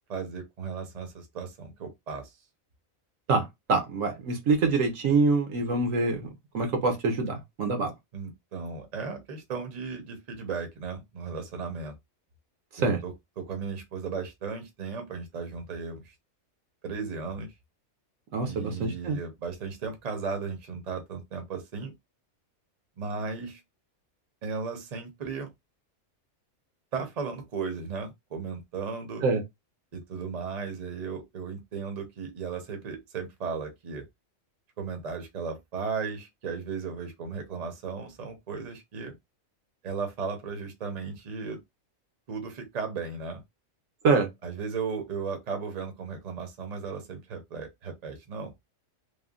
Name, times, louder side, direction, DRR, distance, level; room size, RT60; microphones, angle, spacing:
voice 1, 0.1-2.3 8.1-12.0 12.8-16.1 16.8-17.5 18.4-21.9 23.0-23.6 24.4-25.5 26.9-29.2 29.9-34.0 34.8-39.1 39.8-41.6 42.3-43.4 44.4-48.5, right 5 dB, 35° right, 0.8 m, -35 dB
voice 2, 3.3-6.3 6.5-7.9 12.8-13.0 18.3-19.2 29.2-29.4 44.0-44.3, right 3 dB, 70° right, 1.2 m, -25 dB
3.4 x 2.2 x 2.4 m
omnidirectional pair, 1.5 m